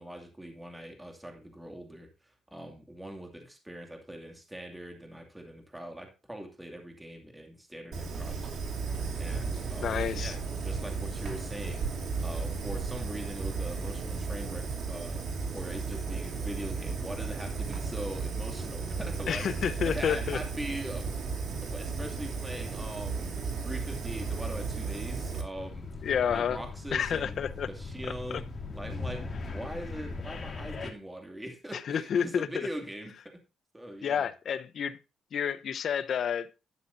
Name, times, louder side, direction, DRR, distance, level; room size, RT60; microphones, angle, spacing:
voice 1, 0.0-8.7 9.2-15.3 15.5-25.9 26.3-27.4 27.7-28.5 28.7-33.4 33.7-34.3, right 1 dB, 10° right, 2.5 m, -42 dB
Fire, 7.9-25.4, right 4 dB, 60° right, 3.0 m, -34 dB
voice 2, 9.8-10.3 19.3-20.4 26.0-26.6 26.9-27.7 31.9-32.7 34.0-35.0 35.3-36.5, left 8 dB, 60° left, 0.8 m, -29 dB
sound 1, 25.5-30.9, left 3 dB, 35° left, 2.5 m, -39 dB
12.0 x 9.3 x 2.7 m
cardioid pair, 90°, 0 cm